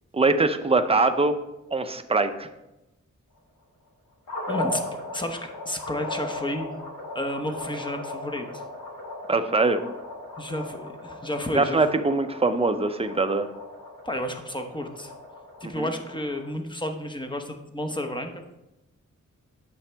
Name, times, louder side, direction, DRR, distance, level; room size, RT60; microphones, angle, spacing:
voice 1, 0.1-1.4 1.7-2.5 9.3-9.8 11.5-13.5 15.6-15.9, right 3 dB, 20° right, 8 dB, 0.6 m, -22 dB
sound 1, 4.3-16.5, left 2 dB, 90° left, 1.7 m, -37 dB
voice 2, 4.5-6.7 7.1-8.6 10.4-11.8 14.0-15.1 15.6-18.4, left 1 dB, 15° left, 5 dB, 0.9 m, -31 dB
8.5 x 6.2 x 3.4 m, 0.95 s
wide cardioid pair, 85°, 30 cm